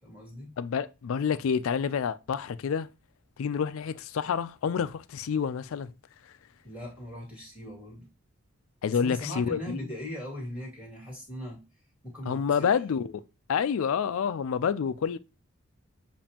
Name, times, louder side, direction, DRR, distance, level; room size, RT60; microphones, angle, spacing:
voice 1, 0.0-0.5 6.6-8.1 8.9-11.6 12.0-12.7, left 1 dB, 5° right, 2.0 m, -39 dB
voice 2, 0.6-2.9 3.4-5.9 8.8-9.8 12.3-13.2 13.5-15.2, left 7 dB, 75° left, 0.4 m, -28 dB
7.0 x 2.6 x 2.8 m
head